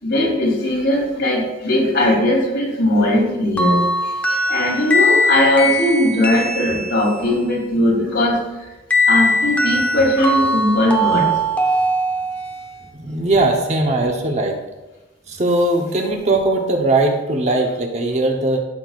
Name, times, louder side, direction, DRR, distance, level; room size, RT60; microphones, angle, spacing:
voice 1, 0.0-8.4 9.1-11.3, left 1 dB, 65° left, -3 dB, 3.2 m, -19 dB
sound 1, 3.6-7.3 8.9-12.7, left 1 dB, 10° left, 1.0 m, -20 dB
voice 2, 12.9-14.6 15.3-18.6, right 2 dB, 35° right, 2 dB, 1.0 m, -19 dB
13.0 x 6.9 x 2.5 m, 1.1 s
head